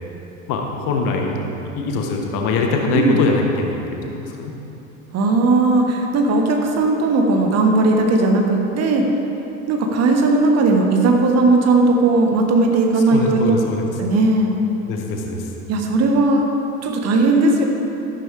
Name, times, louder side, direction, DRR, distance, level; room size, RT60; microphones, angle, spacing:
voice 1, 0.5-1.3 1.8-4.5 13.1-13.9 14.9-15.5, left 3 dB, 50° left, 2 dB, 1.6 m, -22 dB
voice 2, 5.1-9.0 9.7-13.6 14.0-14.5 15.7-16.5 16.8-17.7, right 2 dB, 40° right, 2 dB, 1.5 m, -17 dB
12.5 x 12.0 x 3.5 m, 3.0 s
figure-of-eight pair, 70°, 41 cm